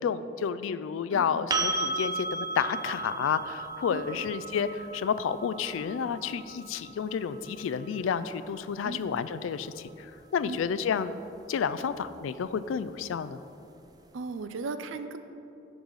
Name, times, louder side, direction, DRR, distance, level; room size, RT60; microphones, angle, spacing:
voice 1, 0.0-11.1 11.5-13.4, left 7 dB, 90° left, 14 dB, 0.3 m, -30 dB
voice 2, 1.1-1.5 3.9-4.1 8.8-9.0 10.4-10.6 14.1-15.2, right 4 dB, 80° right, 10 dB, 0.4 m, -37 dB
sound 1, 1.5-9.3 12.1-12.2, right 3 dB, 20° right, 0.4 m, -35 dB
11.0 x 4.0 x 4.7 m, 2.8 s
head